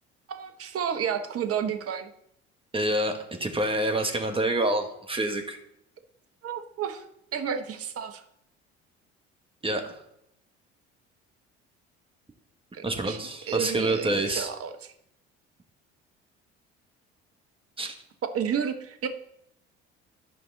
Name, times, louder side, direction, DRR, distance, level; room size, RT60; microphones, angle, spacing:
voice 1, 0.3-2.1 6.4-7.0 7.3-8.2 12.7-13.2 13.5-14.9 18.3-19.1, right 8 dB, 45° right, 7 dB, 1.2 m, -31 dB
voice 2, 2.7-5.6 9.6-10.0 12.8-14.5 17.8-17.9, right 1 dB, 15° right, 4 dB, 1.6 m, -27 dB
11.5 x 5.3 x 3.9 m, 0.77 s
hypercardioid pair, 55°, 33 cm